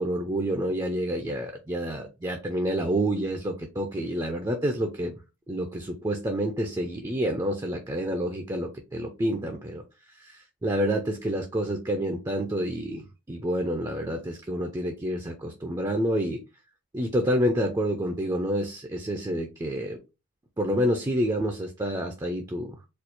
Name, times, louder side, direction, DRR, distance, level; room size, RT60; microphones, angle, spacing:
voice 1, 0.0-5.1 5.5-9.8 10.2-16.4 16.9-20.0 20.6-22.8, equal, 15° right, 0.4 m, -28 dB
4.3 x 2.3 x 2.6 m
head